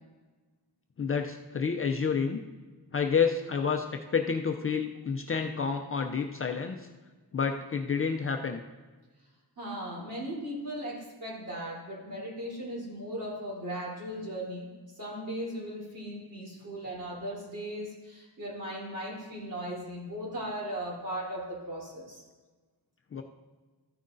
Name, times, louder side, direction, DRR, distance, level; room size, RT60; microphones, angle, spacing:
voice 1, 1.0-2.4 2.9-6.8 7.3-8.6 23.1-23.2, left 6 dB, 35° left, 4 dB, 0.4 m, -29 dB
voice 2, 9.6-14.7 14.9-22.2, equal, 50° right, -5 dB, 3.5 m, -37 dB
13.5 x 9.3 x 2.6 m, 1.3 s
wide cardioid pair, 170°, 40 cm